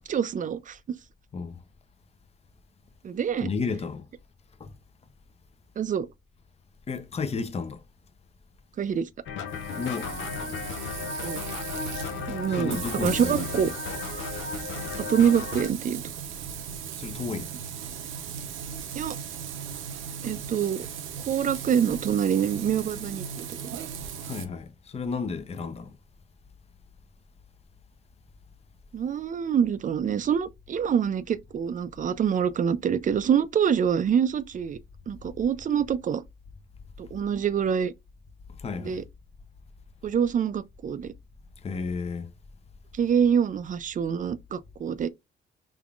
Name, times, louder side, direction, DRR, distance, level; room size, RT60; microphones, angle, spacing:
voice 1, 0.1-0.8 3.0-3.5 5.8-6.1 8.8-9.1 11.2-11.4 12.3-13.7 15.0-16.0 18.9-19.2 20.2-20.9 21.3-23.5 28.9-34.8 35.1-36.2 37.0-37.9 38.8-39.0 40.0-41.1 42.9-45.1, right 8 dB, 40° right, 0.4 m, -25 dB
voice 2, 3.4-4.0 4.6-4.7 6.9-7.8 9.8-10.1 12.5-13.3 17.0-17.5 24.2-25.9 38.6-39.0 41.6-42.3, left 4 dB, 30° left, 0.6 m, -32 dB
sound 1, 9.3-15.7, left 5 dB, 70° left, 0.7 m, -35 dB
Frying (food), 9.5-24.5, right 7 dB, 80° right, 0.7 m, -37 dB
3.5 x 3.5 x 2.4 m
cardioid pair, 90°, 20 cm